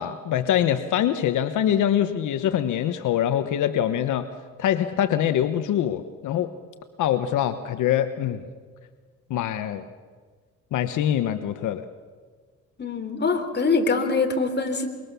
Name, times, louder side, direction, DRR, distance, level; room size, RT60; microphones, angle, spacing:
voice 1, 0.0-4.3 4.6-6.5 7.0-8.4 9.3-9.8 10.7-11.8, left 10 dB, 80° left, 10 dB, 1.1 m, -24 dB
voice 2, 12.8-14.9, left 4 dB, 35° left, 6 dB, 3.4 m, -23 dB
25.0 x 23.0 x 6.9 m, 1.5 s
cardioid pair, 90°, 30 cm